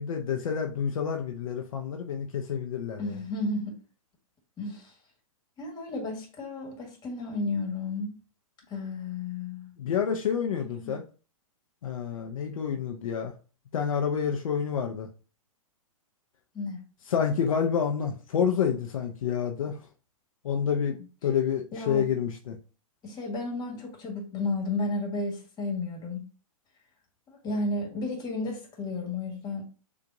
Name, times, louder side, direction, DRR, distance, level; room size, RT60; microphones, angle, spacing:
voice 1, 0.0-3.2 9.8-11.0 11.8-13.3 13.7-15.1 17.1-19.8 20.4-22.6, left 7 dB, 65° left, 0.7 m, -28 dB
voice 2, 3.0-3.7 4.6-4.9 5.6-8.1 8.7-9.7 10.6-10.9 16.5-16.8 21.7-22.1 23.0-26.2 27.3-29.6, left 2 dB, 20° left, 1.5 m, -33 dB
6.8 x 2.5 x 2.6 m
hypercardioid pair, 120°, 19 cm